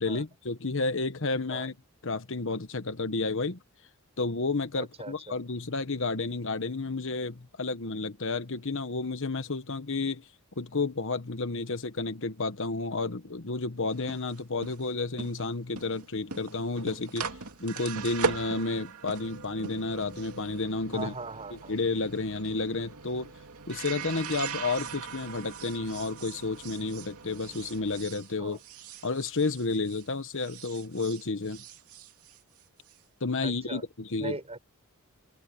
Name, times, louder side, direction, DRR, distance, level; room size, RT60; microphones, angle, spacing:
voice 1, 0.0-1.8 2.0-3.6 4.2-10.3 10.6-17.3 17.6-21.1 21.5-23.3 23.7-28.6 29.0-31.6 33.2-34.4, left 3 dB, 60° left, 1.2 m, -31 dB
voice 2, 4.8-5.4 20.9-21.8 28.4-28.6 33.4-33.8 34.2-34.6, right 2 dB, 30° right, 7.1 m, -39 dB
sound 1, 13.9-30.1 30.4-33.0, right 5 dB, 75° right, 2.6 m, -40 dB
head